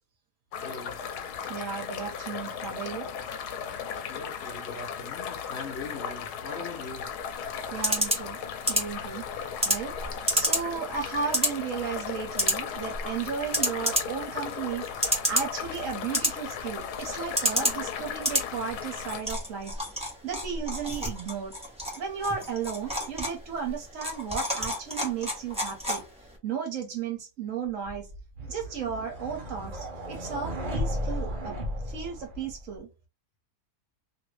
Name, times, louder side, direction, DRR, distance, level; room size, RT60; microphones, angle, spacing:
sound 1, 0.5-19.2, left 7 dB, 85° left, 1.2 m, -36 dB
voice 1, 0.6-1.0 4.1-7.1, left 3 dB, 50° left, 0.9 m, -41 dB
voice 2, 1.5-3.1 7.7-8.4 8.7-9.3 9.6-9.9 10.3-19.8 20.2-21.5 21.9-26.0 26.4-28.1 28.5-31.6 31.9-32.9, right 6 dB, 60° right, 1.1 m, -34 dB
sound 2, 7.0-26.4, equal, 5° right, 0.8 m, -31 dB
sound 3, 27.9-32.8, equal, 40° right, 0.8 m, -34 dB
2.9 x 2.6 x 3.1 m
omnidirectional pair, 1.7 m